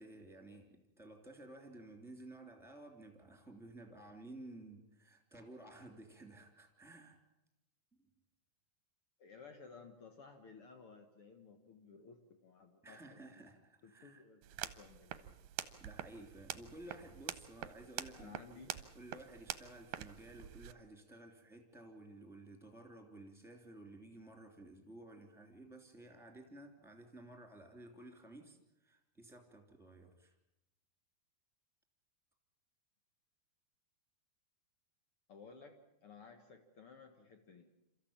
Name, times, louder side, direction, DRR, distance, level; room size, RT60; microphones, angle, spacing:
voice 1, 0.0-7.2 8.0-8.1 12.8-14.2 15.8-28.6 28.8-30.3, right 1 dB, ahead, 4 dB, 2.3 m, -54 dB
voice 2, 9.2-13.4 13.8-15.3 18.1-18.7 35.3-37.7, left 5 dB, 65° left, 5 dB, 1.4 m, -57 dB
sound 1, 14.4-20.7, right 13 dB, 75° right, 2.2 m, -46 dB
28.0 x 14.0 x 8.8 m, 0.90 s
omnidirectional pair, 4.8 m